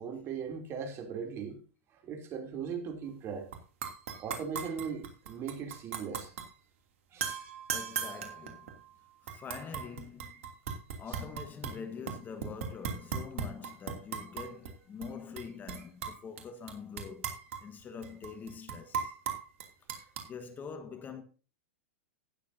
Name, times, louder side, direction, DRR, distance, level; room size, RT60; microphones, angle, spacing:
voice 1, 0.0-1.6 2.0-3.5 4.2-6.4 7.1-7.3, right 6 dB, 35° right, 3.0 m, -39 dB
sound 1, 3.5-3.6 3.8-6.5 7.2-8.9 9.3-11.8 12.1-14.7 15.0-15.1 15.4-16.4 16.7-20.3, right 7 dB, 75° right, 2.8 m, -38 dB
voice 2, 7.7-8.8 9.2-10.5 11.0-19.2 19.9-21.2, left 6 dB, 25° left, 1.4 m, -45 dB
18.0 x 7.1 x 2.8 m
hypercardioid pair, 120°, 7 cm